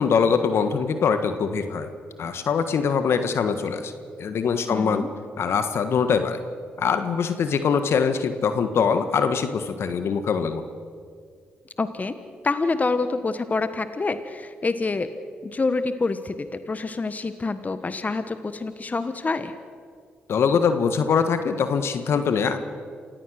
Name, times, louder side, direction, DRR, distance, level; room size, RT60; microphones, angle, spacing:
voice 1, 0.0-1.9 2.2-3.9 4.2-5.0 5.4-6.4 6.8-10.6 20.3-22.6, left 6 dB, 65° left, 9 dB, 1.5 m, -23 dB
voice 2, 4.7-5.1 11.8-12.1 12.4-15.1 15.4-19.5, left 3 dB, 35° left, 11 dB, 1.3 m, -27 dB
28.0 x 16.0 x 6.5 m, 2.1 s
hypercardioid pair, 45°, 5 cm